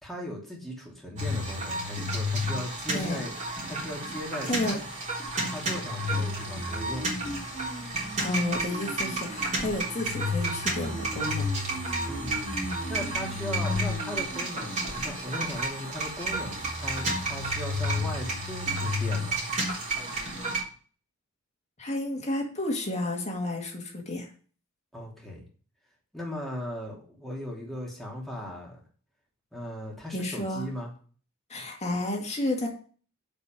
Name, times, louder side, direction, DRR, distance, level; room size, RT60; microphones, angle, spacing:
voice 1, 0.0-3.4 3.6-4.8 5.4-7.1 12.1-12.4 12.9-19.4 24.9-25.4 26.1-28.8 29.5-30.9, equal, ahead, -3 dB, 3.1 m, -38 dB
sound 1, 1.2-20.6, equal, 35° right, 3.6 m, -31 dB
voice 2, 8.2-11.5 21.8-24.3 30.1-30.7 31.5-32.7, left 1 dB, 30° left, 2 dB, 2.3 m, -31 dB
8.0 x 5.4 x 7.5 m, 0.41 s
head